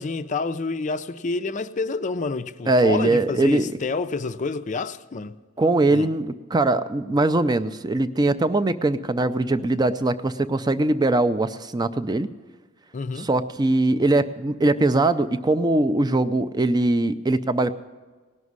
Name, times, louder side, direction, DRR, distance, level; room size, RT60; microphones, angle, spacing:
voice 1, 0.0-5.4 5.9-6.1 12.9-13.3, left 3 dB, 35° left, 0.5 m, -28 dB
voice 2, 2.7-3.7 5.6-12.3 13.2-17.7, right 2 dB, 20° right, 0.4 m, -21 dB
17.5 x 6.3 x 9.5 m
head